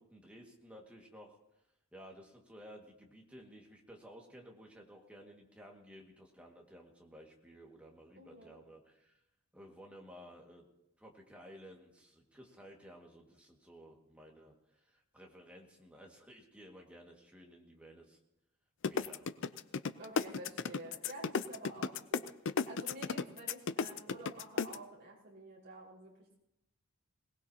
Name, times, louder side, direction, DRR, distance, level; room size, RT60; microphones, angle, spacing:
voice 1, 0.0-1.4 1.9-9.1 9.5-10.7 11.0-18.2 18.9-19.3, equal, 5° right, -1 dB, 1.9 m, -55 dB
voice 2, 8.2-8.6 20.0-22.3 22.7-26.1, right 1 dB, 50° right, -5 dB, 5.0 m, -50 dB
sound 1, 18.8-24.8, left 5 dB, 60° left, 0.5 m, -33 dB
21.5 x 18.5 x 2.9 m, 0.87 s
head